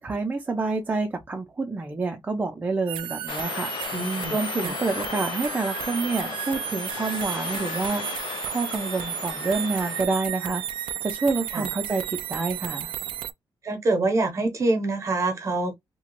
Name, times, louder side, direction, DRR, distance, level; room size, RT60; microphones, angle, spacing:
voice 1, 0.0-10.6 11.0-12.9, right 3 dB, 20° right, 0.5 m, -28 dB
sound 1, 2.9-13.3, right 11 dB, 85° right, 0.3 m, -33 dB
sound 2, 3.3-10.1, left 10 dB, 70° left, 0.4 m, -36 dB
voice 2, 3.9-4.4 4.6-4.7 11.5-11.7 13.6-15.7, right 2 dB, 35° right, 0.9 m, -25 dB
2.9 x 2.3 x 3.0 m
cardioid pair, 155°, 8 cm